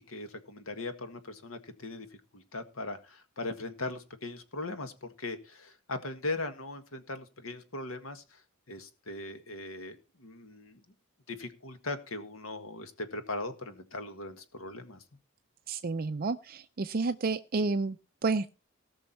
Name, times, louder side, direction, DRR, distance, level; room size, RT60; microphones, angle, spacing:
voice 1, 0.0-10.8 11.3-15.0, left 2 dB, 75° left, 8 dB, 1.7 m, -39 dB
voice 2, 15.7-18.0 18.2-18.5, right 3 dB, 45° right, 9 dB, 0.5 m, -30 dB
18.5 x 6.3 x 4.4 m, 0.33 s
head